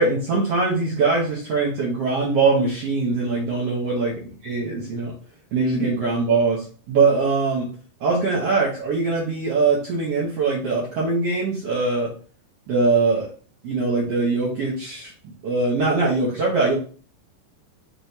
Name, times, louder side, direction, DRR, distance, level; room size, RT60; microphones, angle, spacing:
voice 1, 0.0-4.1 4.4-5.1 5.5-7.7 8.0-12.1 12.7-13.3 13.6-15.1 15.4-16.8, right 3 dB, 65° right, -4 dB, 1.5 m, -22 dB
6.2 x 3.1 x 2.8 m, 0.40 s
omnidirectional pair, 4.0 m